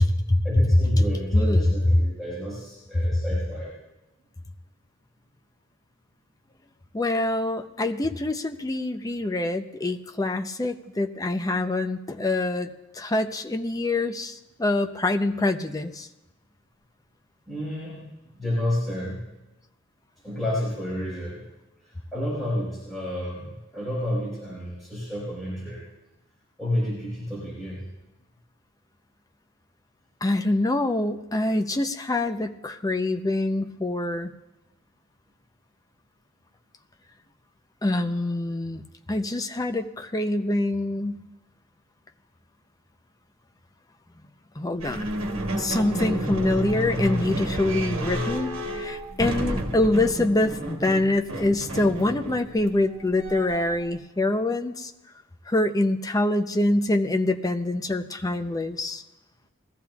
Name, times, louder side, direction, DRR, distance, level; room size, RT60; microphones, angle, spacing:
voice 1, 0.4-3.7 17.5-18.0 18.4-19.3 20.2-21.4 22.1-25.8 26.6-27.9, left 1 dB, ahead, -9 dB, 5.1 m, -30 dB
voice 2, 1.3-1.7 2.9-3.2 6.9-16.1 30.2-34.3 37.8-41.2 44.6-45.1 45.5-54.9 55.5-59.0, left 2 dB, 15° left, 6 dB, 0.6 m, -25 dB
sound 1, 44.8-53.9, right 1 dB, 70° right, 1.6 m, -31 dB
20.5 x 14.5 x 2.4 m, 0.99 s
head